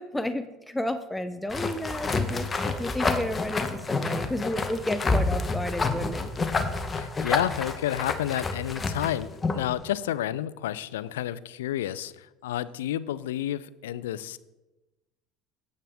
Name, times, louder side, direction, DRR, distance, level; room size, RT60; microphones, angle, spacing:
voice 1, 0.0-6.3, left 1 dB, 10° left, 11 dB, 0.5 m, -32 dB
sound 1, 1.5-9.7, left 3 dB, 25° left, 1.0 m, -28 dB
voice 2, 6.9-14.4, left 12 dB, 90° left, 18 dB, 0.3 m, -30 dB
9.2 x 8.4 x 3.5 m, 1.1 s
supercardioid pair, 85°, 0 cm